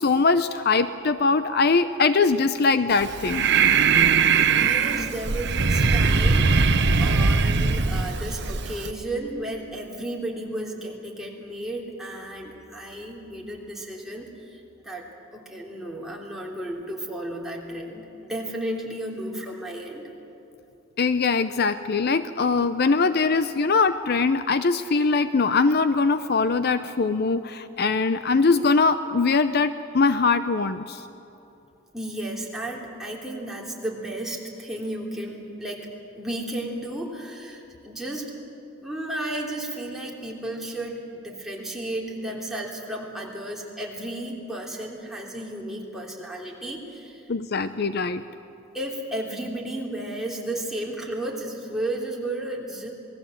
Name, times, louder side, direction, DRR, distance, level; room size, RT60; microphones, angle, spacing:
voice 1, 0.0-3.5 21.0-31.0 47.3-48.2, left 4 dB, 55° left, 11 dB, 0.6 m, -22 dB
Breathing, 2.9-8.9, right 5 dB, 60° right, 0.9 m, -21 dB
voice 2, 4.6-6.6 7.0-15.0 15.3-20.1 31.9-35.9 36.2-38.3 38.8-47.2 48.7-52.9, right 1 dB, ahead, -2 dB, 3.3 m, -33 dB
27.5 x 20.0 x 7.8 m, 2.9 s
head